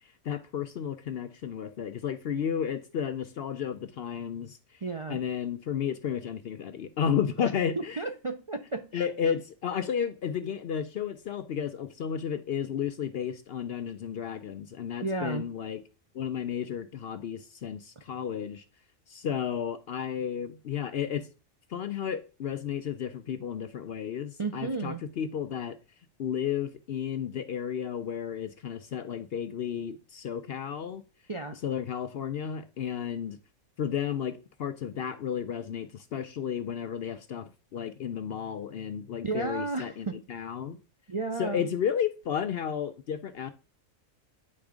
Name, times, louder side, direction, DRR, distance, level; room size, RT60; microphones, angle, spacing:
voice 1, 0.2-4.8 5.1-8.0 8.9-15.8 16.1-18.6 19.1-21.3 21.7-25.8 26.2-31.0 31.6-33.4 33.8-40.8 41.4-43.5, left 8 dB, 60° left, 0.7 m, -33 dB
voice 2, 4.8-5.2 7.4-7.5 8.0-9.0 15.0-15.5 24.4-25.0 31.3-31.6 39.2-40.2 41.1-41.7, right 3 dB, 45° right, 0.4 m, -33 dB
9.7 x 3.5 x 4.9 m
omnidirectional pair, 1.4 m